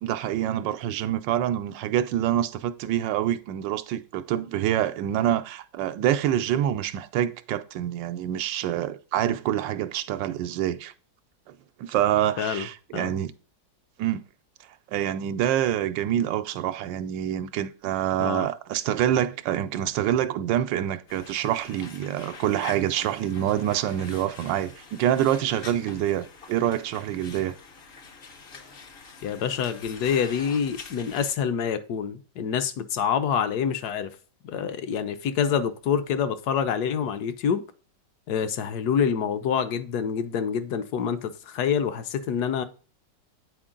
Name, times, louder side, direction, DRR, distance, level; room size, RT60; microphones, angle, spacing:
voice 1, 0.0-10.9 11.5-13.3 14.0-14.2 14.9-27.6, right 11 dB, 80° right, 1.3 m, -26 dB
voice 2, 12.4-12.7 12.9-13.1 18.2-18.5 29.2-34.2 34.4-37.6 38.3-42.6, left 7 dB, 65° left, 1.2 m, -26 dB
sound 1, 21.1-31.3, left 5 dB, 50° left, 0.7 m, -45 dB
8.7 x 4.5 x 3.7 m
omnidirectional pair, 2.0 m